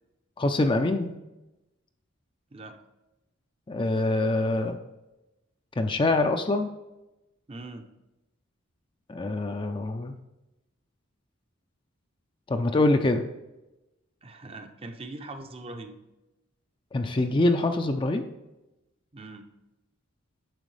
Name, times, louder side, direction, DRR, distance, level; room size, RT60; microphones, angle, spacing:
voice 1, 0.4-1.2 3.7-4.8 5.8-6.7 9.1-10.1 12.5-13.2 16.9-18.2, left 2 dB, 25° left, 6 dB, 0.4 m, -24 dB
voice 2, 7.5-7.9 14.2-16.0 19.1-19.5, right 2 dB, 25° right, 6 dB, 0.6 m, -41 dB
9.0 x 6.2 x 3.3 m, 0.98 s
head